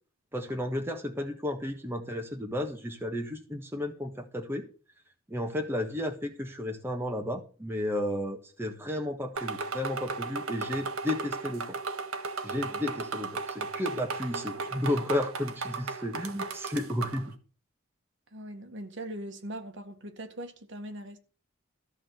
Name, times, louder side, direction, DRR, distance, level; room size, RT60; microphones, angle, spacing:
voice 1, 0.3-4.6 5.3-11.8 12.4-17.3, left 1 dB, 10° right, 1.4 m, -33 dB
sound 1, 9.4-17.3, right 4 dB, 85° right, 1.6 m, -36 dB
voice 2, 18.3-21.2, right 1 dB, 60° right, 1.8 m, -40 dB
14.0 x 5.0 x 7.7 m
head